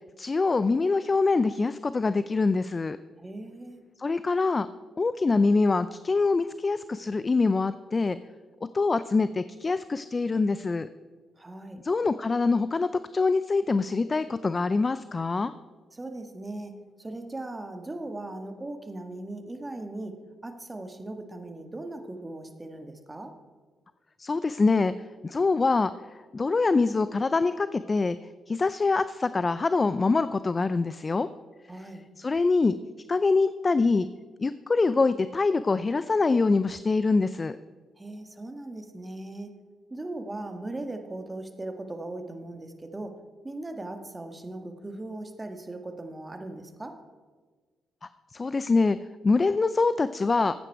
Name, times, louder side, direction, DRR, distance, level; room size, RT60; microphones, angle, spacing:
voice 1, 0.2-3.0 4.0-4.7 5.0-8.2 8.7-10.9 11.8-15.5 24.2-24.9 25.2-25.9 26.3-28.2 28.5-31.3 32.2-32.8 33.1-34.1 34.4-37.6 48.3-49.0 49.2-50.5, left 3 dB, 35° left, 14 dB, 0.4 m, -24 dB
voice 2, 3.2-3.8 11.4-11.8 15.9-16.7 17.0-20.2 20.4-23.3 31.7-32.0 38.0-39.5 39.9-43.2 43.4-47.0, right 2 dB, 25° right, 6 dB, 1.7 m, -38 dB
14.5 x 9.1 x 4.6 m, 1.4 s
supercardioid pair, 55°, 0 cm